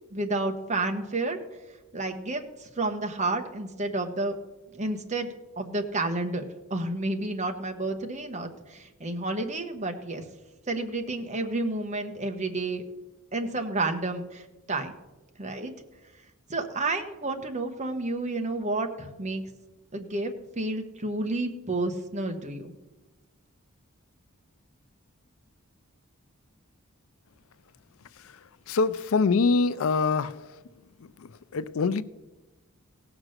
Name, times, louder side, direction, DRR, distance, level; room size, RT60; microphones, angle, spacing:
voice 1, 0.1-1.4 1.9-4.3 4.7-6.4 6.7-10.2 10.7-12.8 13.3-14.9 15.4-15.7 16.5-19.4 19.9-22.7, right 2 dB, 30° right, 1.1 m, -30 dB
voice 2, 28.7-30.3 31.5-32.0, left 4 dB, 75° left, 0.4 m, -23 dB
17.0 x 6.0 x 6.5 m
head